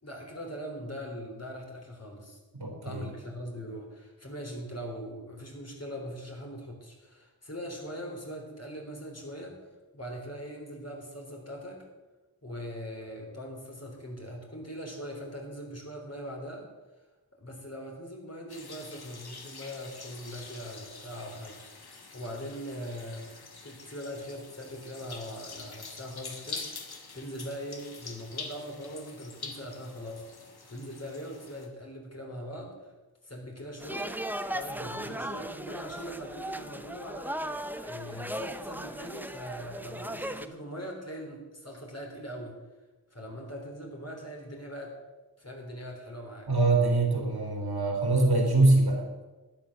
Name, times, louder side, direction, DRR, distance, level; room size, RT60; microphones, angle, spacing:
voice 1, 0.0-2.4 2.8-9.6 9.9-11.8 12.4-16.7 17.4-23.3 23.6-26.8 27.1-30.2 30.6-32.7 33.2-34.2 34.5-37.4 37.8-42.6 43.1-44.9 45.4-46.5, equal, 40° left, 0 dB, 3.7 m, -41 dB
voice 2, 2.5-3.1 46.5-49.2, right 2 dB, 85° right, 1 dB, 3.2 m, -24 dB
sound 1, 18.5-31.7, left 4 dB, 85° left, 1.5 m, -45 dB
sound 2, 33.8-40.5, right 1 dB, 5° right, 0.7 m, -37 dB
12.0 x 10.0 x 6.6 m, 1.2 s
wide cardioid pair, 65°, 37 cm